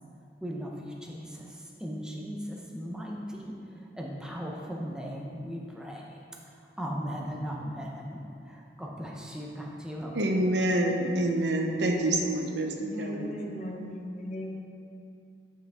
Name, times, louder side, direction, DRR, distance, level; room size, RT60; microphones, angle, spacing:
voice 1, 0.4-6.2 6.4-10.1, equal, 5° right, -2 dB, 0.8 m, -38 dB
voice 2, 10.1-13.3, right 1 dB, 85° right, 2 dB, 0.9 m, -27 dB
voice 3, 12.8-14.6, equal, 40° left, 0 dB, 0.9 m, -37 dB
10.5 x 6.0 x 3.6 m, 2.5 s
head